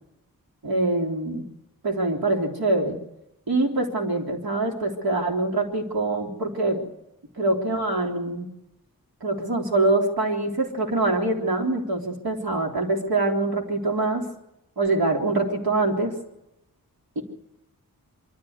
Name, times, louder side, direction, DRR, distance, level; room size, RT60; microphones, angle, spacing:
voice 1, 0.6-1.5 1.8-3.0 3.5-6.8 7.4-8.5 9.2-14.3 14.8-16.2 17.2-17.3, right 2 dB, 90° right, 1 dB, 3.6 m, -24 dB
24.0 x 14.0 x 8.1 m, 0.88 s
wide cardioid pair, 90°, 35 cm